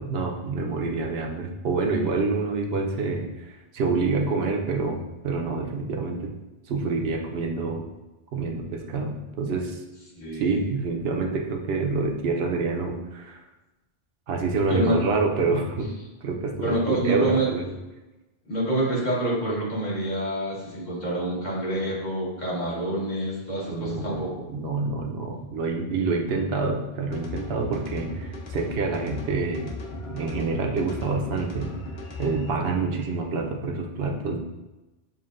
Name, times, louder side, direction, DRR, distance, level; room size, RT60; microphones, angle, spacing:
voice 1, 0.0-3.3 3.7-6.3 6.7-7.8 8.3-9.8 10.3-13.4 14.3-15.9 16.2-17.7 23.7-24.2 24.5-29.7 30.1-31.7 32.2-34.4, right 3 dB, 80° right, 2 dB, 0.8 m, -27 dB
voice 2, 10.2-10.7 14.7-15.0 16.6-17.5 18.5-24.3, right 1 dB, 45° left, -6 dB, 1.3 m, -27 dB
sound 1, 27.1-32.5, left 2 dB, 75° left, 1.0 m, -37 dB
7.0 x 2.4 x 2.5 m, 1.1 s
omnidirectional pair, 1.0 m